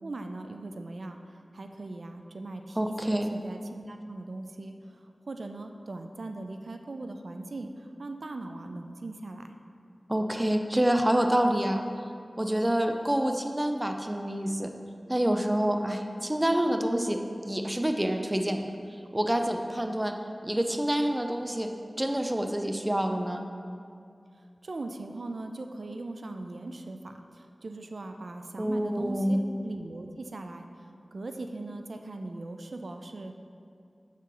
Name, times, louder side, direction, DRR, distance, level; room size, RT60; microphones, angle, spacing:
voice 1, 0.0-9.6 24.6-33.3, right 2 dB, 75° right, 5 dB, 0.4 m, -40 dB
voice 2, 2.8-3.3 10.1-11.8 12.4-14.7 15.1-18.7 19.1-20.1 20.4-21.7 22.0-23.5 28.6-29.4, right 1 dB, 20° right, 5 dB, 0.5 m, -27 dB
7.3 x 7.2 x 3.9 m, 2.4 s
wide cardioid pair, 75°, 0 cm